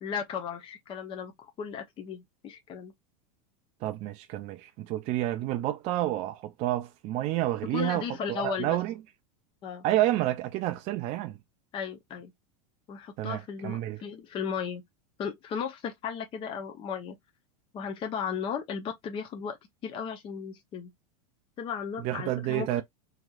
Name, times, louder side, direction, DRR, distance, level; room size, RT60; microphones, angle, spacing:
voice 1, 0.0-2.9 7.7-8.8 9.6-9.8 11.7-12.3 12.9-14.8 15.2-17.2 17.7-19.6 19.8-20.9 21.6-22.8, left 7 dB, 25° left, 0.6 m, -35 dB
voice 2, 3.8-8.9 9.8-11.4 13.2-14.0 22.0-22.8, right 14 dB, 35° right, 0.4 m, -29 dB
3.0 x 2.7 x 2.3 m
supercardioid pair, 130°, 20 cm